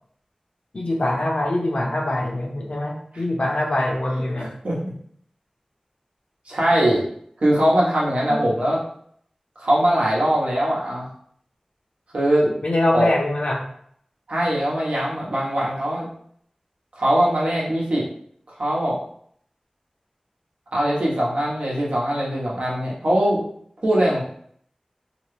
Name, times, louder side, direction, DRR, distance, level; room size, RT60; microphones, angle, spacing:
voice 1, 0.7-4.5 8.3-8.4 12.6-13.7, left 1 dB, 65° left, -1 dB, 0.7 m, -23 dB
voice 2, 4.4-4.9 6.5-7.0 7.4-8.8 9.6-11.1 12.1-12.5 12.9-13.1 14.3-16.1 17.0-18.0 18.5-19.0 20.7-23.4 23.8-24.2, right 1 dB, 90° right, -5 dB, 1.0 m, -21 dB
2.9 x 2.2 x 3.1 m, 0.64 s
wide cardioid pair, 55°, 2 cm